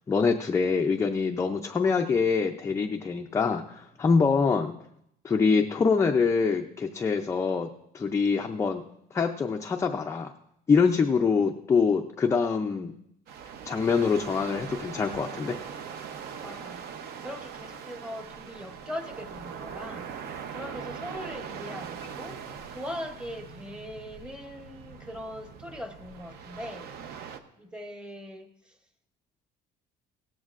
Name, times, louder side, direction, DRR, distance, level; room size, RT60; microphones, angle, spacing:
voice 1, 0.0-4.7 5.2-7.7 7.9-8.8 9.1-10.3 10.7-12.9 13.7-15.5, left 5 dB, 15° left, 3 dB, 0.4 m, -25 dB
sound 1, 13.3-27.4, right 7 dB, 60° right, 0.8 m, -41 dB
voice 2, 16.4-16.8 17.2-20.1 20.5-22.4 22.7-26.9 27.6-28.7, left 1 dB, 5° right, 6 dB, 0.8 m, -40 dB
17.5 x 13.5 x 2.4 m, 0.76 s
cardioid pair, 175°, 19 cm